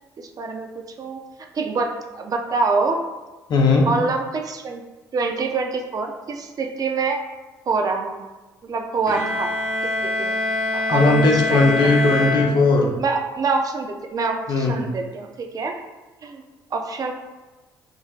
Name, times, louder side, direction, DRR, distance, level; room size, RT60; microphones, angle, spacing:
voice 1, 0.4-1.2 1.5-3.0 3.8-4.8 5.1-7.2 7.7-8.2 8.6-9.5 10.0-10.4 10.7-11.9 13.0-15.7 16.2-16.4 16.7-17.1, right 4 dB, 45° right, 3 dB, 0.5 m, -25 dB
voice 2, 3.5-3.9 10.9-12.9 14.5-14.8, left 3 dB, 55° left, 0 dB, 0.7 m, -17 dB
Bowed string instrument, 9.1-13.1, left 2 dB, 20° right, 1.1 m, -25 dB
3.7 x 2.6 x 2.4 m, 1.2 s
hypercardioid pair, 55°, 9 cm